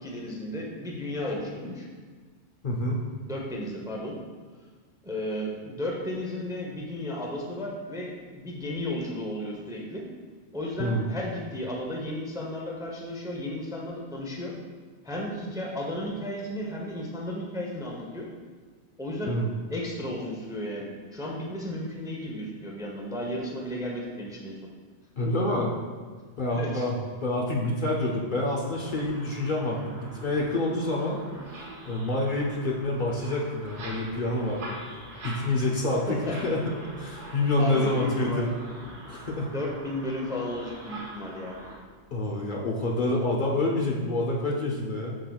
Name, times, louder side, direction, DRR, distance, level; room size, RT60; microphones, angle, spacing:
voice 1, 0.0-1.8 3.2-4.2 5.0-10.0 10.5-14.5 15.0-18.3 19.0-19.4 19.7-24.6 26.5-26.8 36.3-36.4 37.6-38.5 39.0-39.1 39.5-41.6, left 1 dB, 5° right, -2 dB, 0.7 m, -34 dB
voice 2, 2.6-3.0 10.8-11.1 19.2-19.5 25.2-25.8 26.4-27.0 27.2-31.2 31.8-34.7 35.2-38.5 39.1-39.5 42.1-45.2, left 2 dB, 50° left, -2 dB, 0.8 m, -27 dB
sound 1, 28.7-41.8, right 1 dB, 90° right, 1.4 m, -43 dB
7.7 x 5.8 x 2.3 m, 1.5 s
omnidirectional pair, 1.2 m